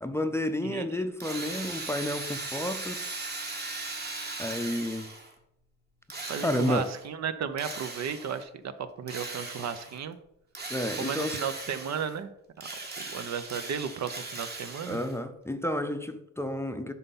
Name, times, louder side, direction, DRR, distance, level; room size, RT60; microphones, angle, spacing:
voice 1, 0.0-3.0 4.4-5.1 6.4-6.9 10.7-11.4 14.9-16.9, left 1 dB, 10° left, 8 dB, 0.6 m, -31 dB
Drill, 1.2-5.3 6.1-7.1 7.6-8.4 9.1-10.0 10.5-12.2 12.6-15.2, right 3 dB, 35° right, 1.6 m, -38 dB
voice 2, 6.3-10.2 11.0-12.3 12.6-12.7 13.0-15.0, right 7 dB, 60° right, 11 dB, 0.8 m, -34 dB
7.4 x 5.7 x 4.1 m, 0.79 s
cardioid pair, 90°, 30 cm